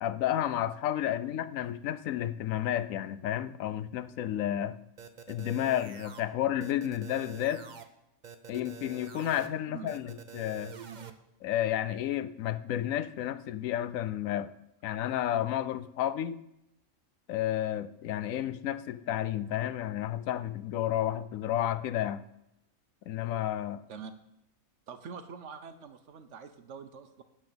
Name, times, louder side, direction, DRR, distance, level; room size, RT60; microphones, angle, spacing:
voice 1, 0.0-4.8 5.3-7.7 8.5-10.7 11.4-14.5 14.8-16.4 17.3-22.2 23.1-23.8, left 11 dB, 80° left, 1.0 m, -31 dB
sound 1, 5.0-6.2 6.6-7.8 8.2-9.5 9.9-11.1, right 7 dB, 45° right, 0.7 m, -46 dB
voice 2, 24.9-27.2, right 6 dB, 65° right, 1.0 m, -45 dB
8.5 x 6.1 x 6.8 m
omnidirectional pair, 1.4 m